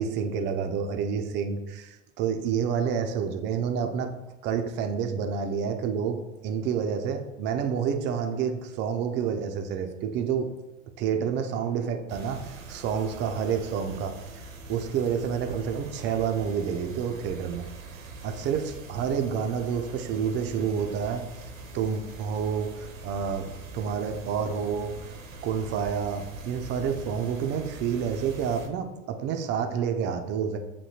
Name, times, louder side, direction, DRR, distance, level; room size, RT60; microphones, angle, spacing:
voice 1, 0.0-4.1 4.4-10.6 11.0-17.7 18.2-21.3 21.7-25.1 25.4-30.6, right 7 dB, 30° right, 6 dB, 0.4 m, -29 dB
sound 1, 12.1-28.7, right 3 dB, 85° right, 0.7 m, -43 dB
6.7 x 2.8 x 2.7 m, 1.0 s
figure-of-eight pair, 75°, 39 cm